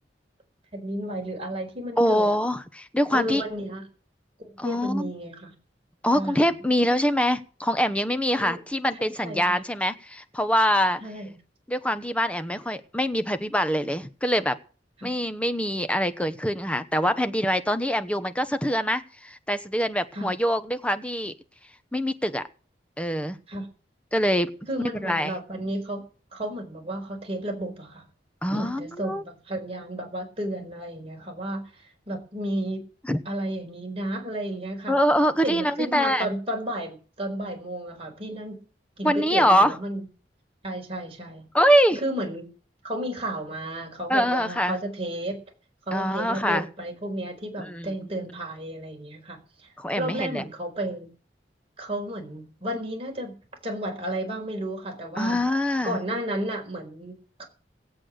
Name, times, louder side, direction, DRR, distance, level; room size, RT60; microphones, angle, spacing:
voice 1, 0.7-2.4 3.1-3.8 4.4-5.5 6.1-6.5 8.4-8.6 8.9-9.4 11.0-11.3 15.0-15.1 20.1-20.3 23.5-23.7 24.7-26.0 26.3-28.0 28.5-32.8 33.2-35.0 35.4-38.6 39.0-40.0 40.6-41.4 42.0-42.5 42.8-45.4 45.9-49.4 49.9-51.1 51.8-53.4 53.6-55.4 55.8-57.4, right 1 dB, 35° right, 1 dB, 4.7 m, -32 dB
voice 2, 2.0-3.4 4.6-5.1 6.0-11.0 11.7-14.6 15.0-21.3 21.9-22.4 23.0-23.4 24.1-24.5 24.9-25.3 28.4-29.2 33.1-33.2 34.9-36.3 39.0-39.8 41.5-42.0 44.1-44.8 45.9-46.7 47.6-47.9 49.8-50.4 55.2-56.0, equal, 5° left, 10 dB, 1.0 m, -24 dB
18.5 x 8.5 x 6.5 m, 0.38 s
head